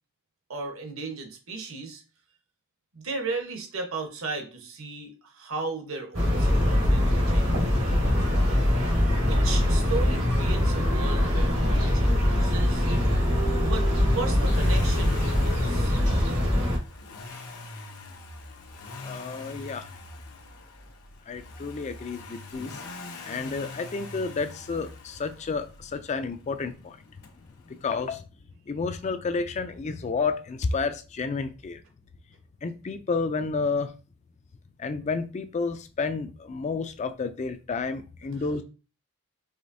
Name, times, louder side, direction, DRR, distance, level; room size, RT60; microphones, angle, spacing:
voice 1, 0.5-2.0 2.9-7.7 9.2-12.9 13.6-13.9 14.1-16.0, right 3 dB, 60° right, 1.1 m, -35 dB
sound 1, 6.1-16.8, left 1 dB, 90° right, 1.5 m, -23 dB
Accelerating revving vroom, 14.0-25.9 27.2-27.3, left 3 dB, 75° left, 0.9 m, -42 dB
voice 2, 19.0-19.8 21.3-22.8 23.2-27.0 27.7-28.2 28.7-31.8 32.6-33.9 34.8-38.6, left 4 dB, 30° left, 0.3 m, -30 dB
4.9 x 3.3 x 2.6 m
head